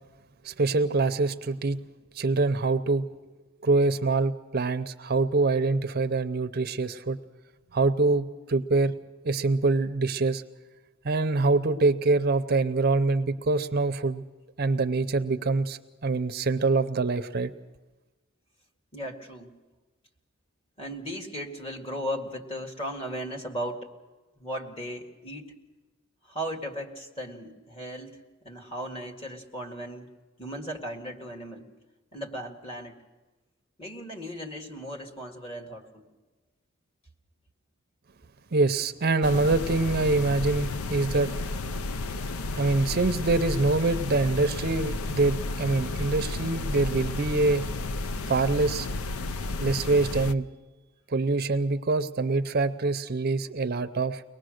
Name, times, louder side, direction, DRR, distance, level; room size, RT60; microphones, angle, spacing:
voice 1, 0.4-1.8 2.1-3.1 3.6-7.2 7.7-9.0 9.2-10.4 11.0-14.2 14.6-17.5 38.5-41.3 42.6-47.7 48.3-48.9 49.6-50.5 51.1-54.2, right 3 dB, 45° right, 10 dB, 0.6 m, -25 dB
voice 2, 18.9-19.5 20.8-23.9 24.4-25.5 26.3-28.2 28.4-30.1 30.4-31.7 32.1-33.0 33.8-36.1, equal, 25° left, 3 dB, 2.0 m, -36 dB
sound 1, 39.2-50.3, left 3 dB, 85° left, 0.6 m, -32 dB
23.5 x 19.0 x 6.5 m, 1.2 s
head